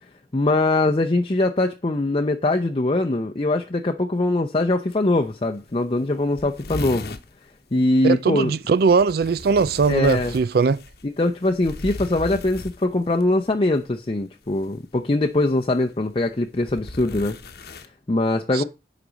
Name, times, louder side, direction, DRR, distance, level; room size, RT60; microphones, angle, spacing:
voice 1, 0.3-7.1 7.7-8.5 9.9-10.3 11.2-17.4 17.7-18.6, left 2 dB, 30° left, 0.7 m, -22 dB
sound 1, 4.9-5.0 5.3-5.4 5.7-5.8 6.0-7.3 8.8-13.2 14.5-14.8 15.6-17.9, left 2 dB, 60° left, 1.0 m, -37 dB
voice 2, 8.0-10.8 18.5-18.6, right 4 dB, 60° right, 0.4 m, -20 dB
9.9 x 5.2 x 6.2 m
head